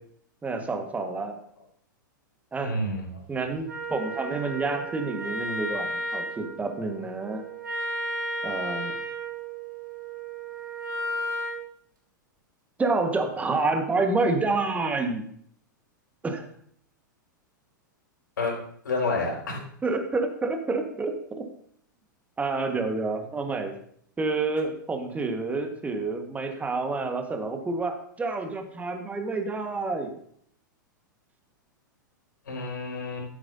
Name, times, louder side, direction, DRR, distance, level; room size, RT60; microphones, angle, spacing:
voice 1, 0.4-1.4 2.5-2.8 3.3-7.4 8.4-8.9 12.8-15.3 16.2-16.5 19.8-21.4 22.4-23.7 24.2-30.1, right 3 dB, 15° right, 5 dB, 1.6 m, -28 dB
voice 2, 2.6-3.2 18.4-18.5 18.8-19.6 32.5-33.3, left 2 dB, 70° left, -1 dB, 5.1 m, -29 dB
Wind instrument woodwind instrument, 3.7-11.6, right 1 dB, 80° right, 2.9 m, -34 dB
12.5 x 10.0 x 2.8 m, 0.65 s
figure-of-eight pair, 100°, 11 cm